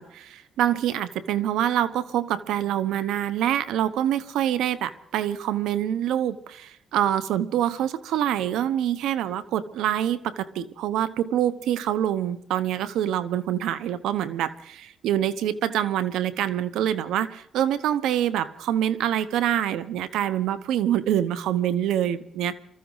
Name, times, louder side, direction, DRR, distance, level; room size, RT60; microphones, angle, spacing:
voice 1, 0.0-22.6, right 11 dB, 85° right, 14 dB, 1.0 m, -25 dB
24.5 x 14.0 x 4.0 m, 0.69 s
cardioid pair, 90°, 0 cm